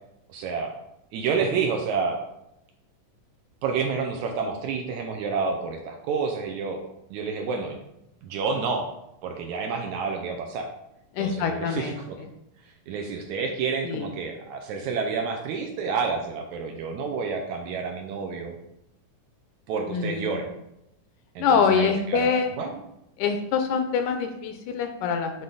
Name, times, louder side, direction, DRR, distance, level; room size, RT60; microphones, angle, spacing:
voice 1, 0.3-0.7 1.1-2.2 3.6-6.8 7.1-7.8 8.2-8.9 9.2-10.7 11.2-11.9 12.9-18.6 19.7-20.5 21.4-22.3 22.6-22.8, right 5 dB, 80° right, 3 dB, 1.8 m, -29 dB
voice 2, 11.1-12.0 13.8-14.1 19.9-20.4 21.4-22.5 23.2-25.4, left 6 dB, 80° left, 6 dB, 1.9 m, -25 dB
9.8 x 3.7 x 3.9 m, 0.84 s
omnidirectional pair, 3.8 m